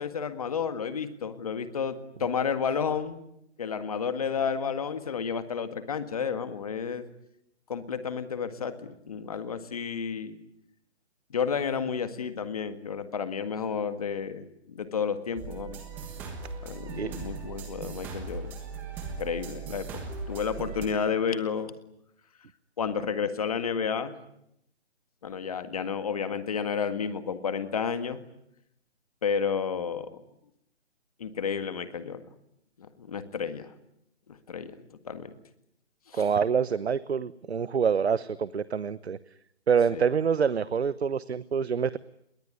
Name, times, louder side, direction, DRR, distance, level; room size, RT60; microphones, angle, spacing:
voice 1, 0.0-3.2 3.6-7.0 7.7-10.4 11.3-15.8 16.6-18.6 19.2-19.9 20.3-21.7 22.8-24.1 25.2-28.2 29.2-30.2 31.2-32.2 32.8-33.7 34.3-34.7 35.0-35.3 36.1-36.3 39.9-40.0, left 6 dB, 30° left, 10 dB, 1.8 m, -31 dB
sound 1, 15.4-20.9, right 5 dB, 5° right, 1.3 m, -38 dB
voice 2, 36.1-39.2 39.7-42.0, right 6 dB, 65° right, 16 dB, 1.1 m, -26 dB
28.0 x 21.5 x 9.7 m, 0.79 s
hypercardioid pair, 170°, 35 cm